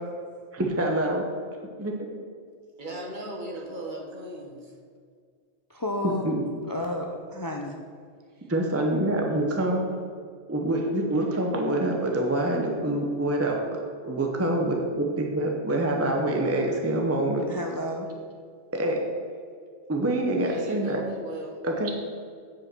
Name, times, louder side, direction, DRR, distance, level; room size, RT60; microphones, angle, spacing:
voice 1, 0.5-1.2 1.8-1.9 6.0-6.4 8.5-10.0 10.5-13.8 14.0-17.5 18.7-19.0 19.9-21.0 21.6-21.9, right 1 dB, 15° right, 1 dB, 0.7 m, -26 dB
voice 2, 2.8-4.7 20.4-21.6, right 1 dB, 45° right, -1 dB, 1.5 m, -37 dB
voice 3, 5.7-6.2 6.7-7.7 17.5-18.1, left 1 dB, 25° left, 1 dB, 0.5 m, -31 dB
8.7 x 5.4 x 6.1 m, 2.1 s
omnidirectional pair, 1.1 m